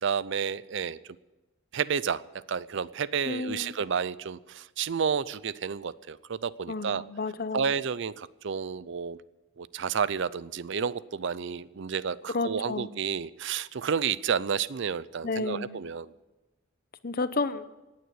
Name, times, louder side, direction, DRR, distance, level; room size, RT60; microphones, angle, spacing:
voice 1, 0.0-1.0 1.7-2.2 2.5-7.0 7.5-9.2 9.6-16.1, right 6 dB, 60° right, 19 dB, 0.5 m, -31 dB
voice 2, 3.2-3.7 6.7-7.7 12.3-12.9 15.2-15.8 17.0-17.6, left 3 dB, 45° left, 13 dB, 0.8 m, -31 dB
17.0 x 9.5 x 8.0 m, 1.1 s
head